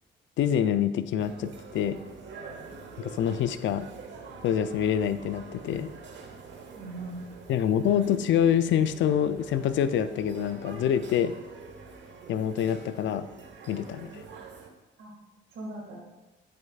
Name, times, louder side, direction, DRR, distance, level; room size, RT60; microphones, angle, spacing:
voice 1, 0.4-2.0 3.0-3.9 4.4-5.9 7.5-11.3 12.3-13.3 13.7-14.1, left 9 dB, 70° left, 13 dB, 0.5 m, -26 dB
sound 1, 1.2-14.7, right 4 dB, 65° right, 1.1 m, -46 dB
voice 2, 6.8-7.5 14.0-14.2 15.0-15.1 15.5-16.0, right 2 dB, 80° right, -1 dB, 2.0 m, -40 dB
8.7 x 6.5 x 2.4 m, 1.2 s
cardioid pair, 90°, 20 cm